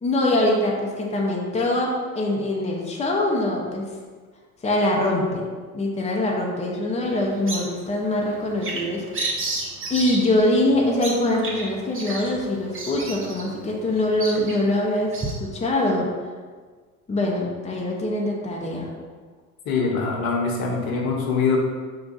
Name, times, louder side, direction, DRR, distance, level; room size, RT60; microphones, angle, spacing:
voice 1, 0.0-3.9 4.6-5.4 5.7-9.4 9.9-16.1 17.1-18.9, left 1 dB, 15° left, -1 dB, 0.8 m, -23 dB
Bird vocalization bird call bird song, 7.0-15.3, right 2 dB, 30° right, 0.9 m, -33 dB
voice 2, 19.7-21.6, left 4 dB, 55° left, -1 dB, 1.0 m, -23 dB
4.8 x 2.3 x 4.1 m, 1.5 s
hypercardioid pair, 65°, 43 cm